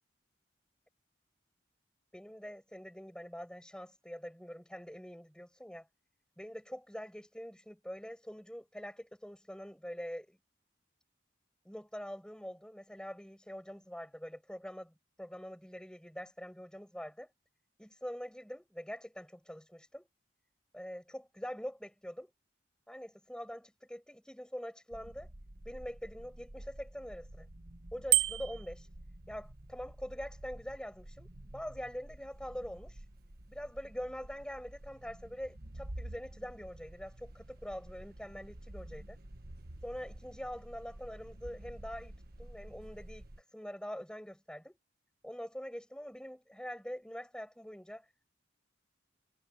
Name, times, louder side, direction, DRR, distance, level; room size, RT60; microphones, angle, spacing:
voice 1, 2.1-5.9 6.4-10.4 11.7-17.3 17.8-20.1 20.7-22.3 22.9-25.3 25.7-27.5 27.9-28.9 29.3-31.3 31.5-33.1 33.5-39.2 39.8-44.8 45.2-48.1, equal, 5° left, 6.9 m, -44 dB
sound 1, 24.9-43.4, right 1 dB, 55° right, 1.4 m, -50 dB
Bicycle bell, 28.1-28.7, right 19 dB, 80° right, 0.5 m, -28 dB
head